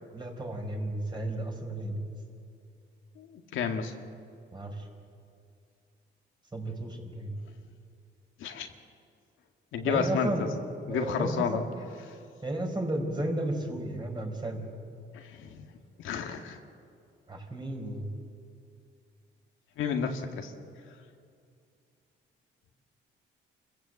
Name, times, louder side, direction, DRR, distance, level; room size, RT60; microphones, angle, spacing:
voice 1, 0.1-1.9 4.5-4.7 6.5-7.3 9.8-10.4 10.9-11.6 12.4-14.7 17.3-18.1, right 1 dB, 20° right, 1 dB, 5.1 m, -33 dB
voice 2, 3.2-3.9 8.4-8.7 9.7-10.5 10.9-11.6 12.0-12.1 15.1-15.7 16.0-16.6 19.8-20.5, left 6 dB, 85° left, 4 dB, 1.9 m, -31 dB
27.5 x 15.5 x 8.1 m, 2.4 s
cardioid pair, 90°, 20 cm